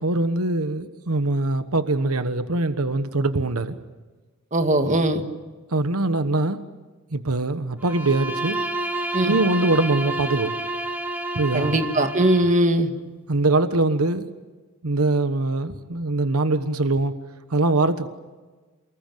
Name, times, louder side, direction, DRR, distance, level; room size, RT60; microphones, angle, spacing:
voice 1, 0.0-3.8 5.7-6.6 7.1-8.6 9.2-10.5 11.3-11.8 13.3-14.3 14.8-17.1 17.5-18.1, right 2 dB, 85° right, 10 dB, 1.3 m, -22 dB
voice 2, 4.5-5.2 9.1-9.4 11.5-12.9, right 1 dB, 35° right, 6 dB, 2.0 m, -20 dB
Bowed string instrument, 7.8-12.7, right 1 dB, 10° right, 2.4 m, -29 dB
29.0 x 20.5 x 9.3 m, 1.3 s
head